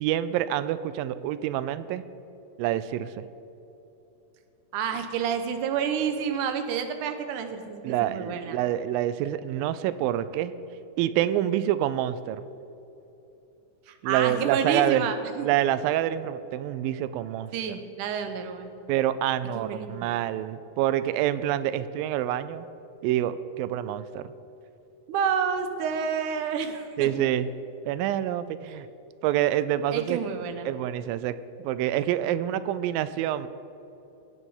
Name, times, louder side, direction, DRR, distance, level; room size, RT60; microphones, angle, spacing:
voice 1, 0.0-2.0 2.6-3.3 7.8-10.5 11.0-12.5 14.0-15.1 15.4-17.8 18.9-22.7 23.0-24.3 27.0-27.5 27.9-28.9 29.2-30.2 30.6-31.4 31.6-33.5, right 12 dB, 90° right, 14 dB, 2.3 m, -27 dB
voice 2, 4.7-8.6 13.9-15.5 17.5-18.7 19.6-20.1 25.1-27.1 28.7-28.8 29.9-30.7, right 7 dB, 70° right, 8 dB, 2.3 m, -29 dB
19.5 x 8.2 x 5.6 m, 3.0 s
omnidirectional pair, 4.0 m